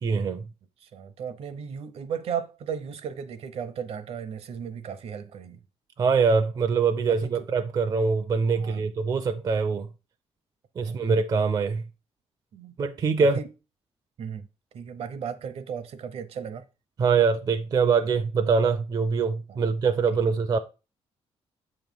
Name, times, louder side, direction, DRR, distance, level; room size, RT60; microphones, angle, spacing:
voice 1, 0.0-0.5 6.0-9.9 10.8-11.8 12.8-13.4 17.0-20.6, right 5 dB, 35° right, 0.4 m, -23 dB
voice 2, 0.8-5.6 7.1-7.5 8.5-8.9 10.8-11.1 12.5-12.7 13.2-13.5 14.2-14.5 14.7-16.7 19.5-19.7 20.1-20.2, right 7 dB, 65° right, 0.7 m, -36 dB
7.8 x 3.1 x 5.3 m
wide cardioid pair, 165°, 11 cm